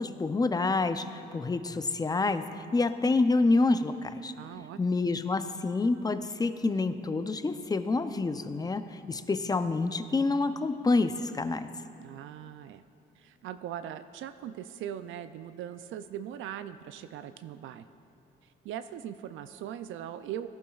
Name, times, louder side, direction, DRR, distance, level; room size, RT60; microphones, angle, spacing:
voice 1, 0.0-4.3 4.8-11.7, left 3 dB, 20° left, 10 dB, 0.5 m, -28 dB
voice 2, 4.3-5.1 12.0-12.8 13.2-17.9 18.4-20.5, right 10 dB, 75° right, 11 dB, 0.4 m, -40 dB
17.5 x 11.5 x 2.4 m, 2.8 s
cardioid pair, 90°, 20 cm